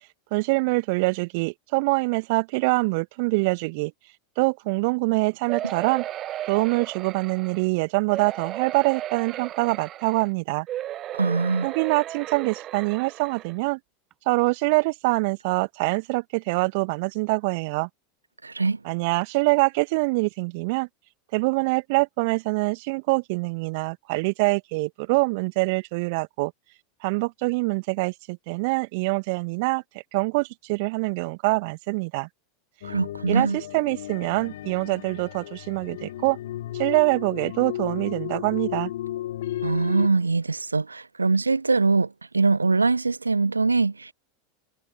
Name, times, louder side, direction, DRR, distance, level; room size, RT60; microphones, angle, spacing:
voice 1, 0.3-3.9 4.4-6.0 6.5-10.7 11.6-13.8 14.3-17.9 18.8-20.9 21.3-26.5 27.0-29.8 30.1-32.3 33.3-36.4 36.8-38.9, right 28 dB, 50° right, 1.2 m, -24 dB
sound 1, 5.5-7.6 8.1-10.3 10.7-13.5 14.1-14.2 14.5-14.6, right 12 dB, 35° right, 0.6 m, -35 dB
voice 2, 11.2-11.7 18.4-18.8 32.8-33.6 39.6-44.1, right 3 dB, 80° right, 0.6 m, -23 dB
sound 2, 32.8-40.1, left 13 dB, 60° left, 2.4 m, -34 dB
figure-of-eight pair, 85°, 0 cm